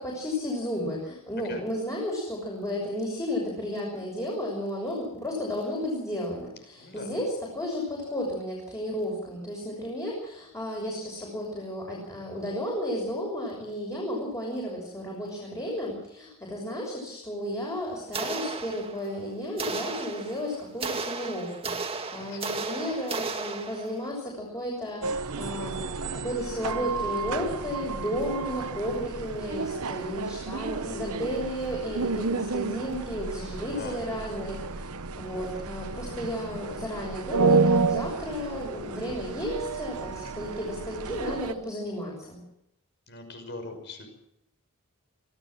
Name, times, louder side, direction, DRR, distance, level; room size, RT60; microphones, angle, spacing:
voice 1, 0.0-34.9 35.2-42.4, equal, 15° left, -2 dB, 6.6 m, -33 dB
voice 2, 6.8-7.2 22.2-22.6 33.7-34.1 40.2-40.4 43.1-44.1, left 2 dB, 55° left, 6 dB, 6.1 m, -41 dB
sound 1, 18.1-19.2 19.6-24.1, right 4 dB, 25° right, 2.0 m, -34 dB
sound 2, 25.0-41.5, right 4 dB, 85° right, 1.0 m, -31 dB
25.5 x 16.0 x 7.8 m, 0.82 s
head